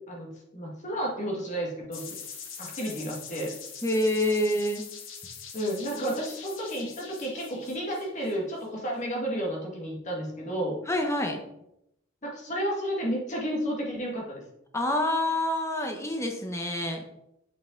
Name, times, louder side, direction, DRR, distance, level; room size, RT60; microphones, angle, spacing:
voice 1, 0.1-2.1 2.6-3.5 5.5-10.8 12.2-14.4, equal, 40° left, -2 dB, 1.9 m, -32 dB
sound 1, 1.9-8.6, left 6 dB, 85° left, 1.3 m, -43 dB
voice 2, 3.8-4.8 10.9-11.4 14.7-17.0, left 1 dB, 15° left, 3 dB, 1.1 m, -27 dB
7.5 x 6.0 x 3.8 m, 0.81 s
head